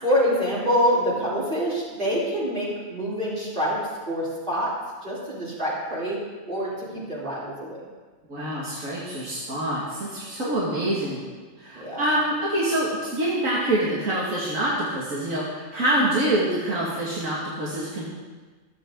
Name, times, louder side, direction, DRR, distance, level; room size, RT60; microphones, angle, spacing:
voice 1, 0.0-4.7 5.0-6.2 6.5-7.8 10.6-10.9 11.7-12.0, equal, 40° right, -7 dB, 3.9 m, -26 dB
voice 2, 8.3-11.2 11.6-18.0, right 1 dB, 90° right, -6 dB, 2.7 m, -26 dB
26.0 x 8.9 x 3.9 m, 1.4 s
omnidirectional pair, 1.3 m